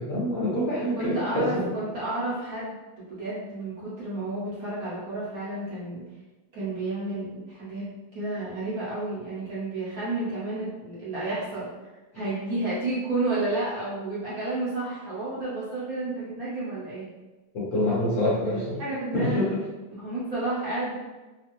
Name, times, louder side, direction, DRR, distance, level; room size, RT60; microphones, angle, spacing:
voice 1, 0.0-1.6 17.5-18.8 19.1-19.6, left 1 dB, 50° left, -8 dB, 1.1 m, -26 dB
voice 2, 0.9-6.0 6.5-7.9 8.1-11.7 12.1-17.1 18.3-19.5 19.9-20.9, right 2 dB, 55° right, -9 dB, 1.1 m, -31 dB
3.4 x 2.4 x 2.9 m, 1.2 s
omnidirectional pair, 2.3 m